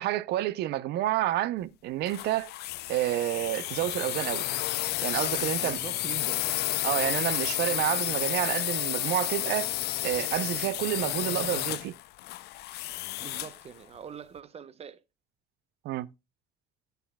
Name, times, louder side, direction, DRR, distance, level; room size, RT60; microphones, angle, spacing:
voice 1, 0.0-2.5 2.9-4.5 5.0-5.8 6.8-9.7 10.0-11.9 15.8-16.1, right 14 dB, 80° right, 0.6 m, -29 dB
sound 1, 2.1-13.6, left 16 dB, 75° left, 0.5 m, -31 dB
sound 2, 2.9-8.1, right 5 dB, 60° right, 4.8 m, -53 dB
voice 2, 5.6-6.5 13.2-15.0, right 7 dB, 35° right, 0.8 m, -43 dB
11.0 x 8.2 x 2.2 m
cardioid pair, 110°, 17 cm